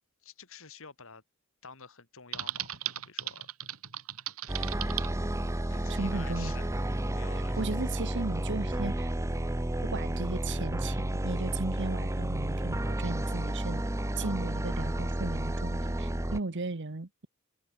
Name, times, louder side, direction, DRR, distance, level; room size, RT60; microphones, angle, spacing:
voice 1, 0.2-1.2 1.6-3.5 4.6-6.7 7.1-7.8, left 5 dB, 65° left, 3.0 m, -50 dB
Typing, 2.3-5.1, right 13 dB, 80° right, 2.9 m, -36 dB
sound 1, 4.5-16.4, right 1 dB, 15° right, 0.7 m, -31 dB
voice 2, 5.9-6.5 7.6-9.1 9.8-13.8 14.2-17.3, right 3 dB, 55° right, 1.1 m, -36 dB
head